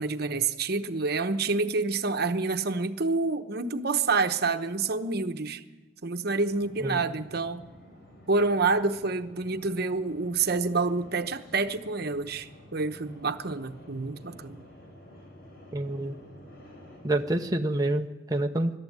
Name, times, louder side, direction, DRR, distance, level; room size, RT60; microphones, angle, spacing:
voice 1, 0.0-5.6 6.0-7.7 8.3-14.6, right 3 dB, 60° right, 1.0 m, -28 dB
sound 1, 6.4-17.5, left 1 dB, 60° left, 6.0 m, -51 dB
voice 2, 15.7-16.2 17.0-18.7, right 1 dB, 20° right, 0.7 m, -27 dB
22.0 x 12.5 x 9.5 m
head